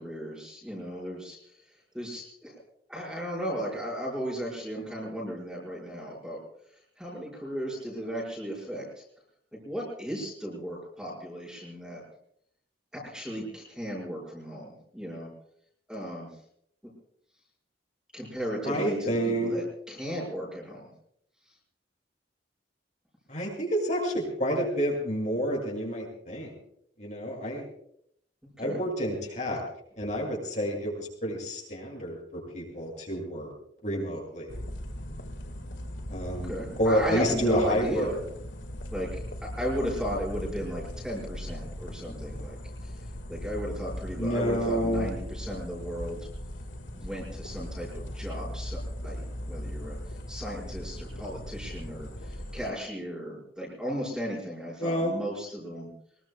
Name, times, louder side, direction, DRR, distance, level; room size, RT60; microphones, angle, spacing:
voice 1, 0.0-1.6 1.9-2.6 2.9-6.4 6.7-9.0 9.5-12.0 12.9-15.3 15.9-16.4 18.1-20.9 28.6-28.8 36.3-38.2 38.9-43.0 43.3-46.3 46.9-50.0 50.3-55.9, equal, 5° right, -4 dB, 5.7 m, -35 dB
voice 2, 18.6-19.5 23.3-26.5 27.0-27.6 28.6-29.6 30.0-33.5 33.8-34.6 36.1-36.5 36.8-38.1 44.2-45.1 54.8-55.1, equal, 40° left, -2 dB, 7.7 m, -29 dB
sound 1, 34.5-52.7, equal, 85° left, 2.1 m, -39 dB
24.5 x 22.5 x 2.4 m, 0.69 s
head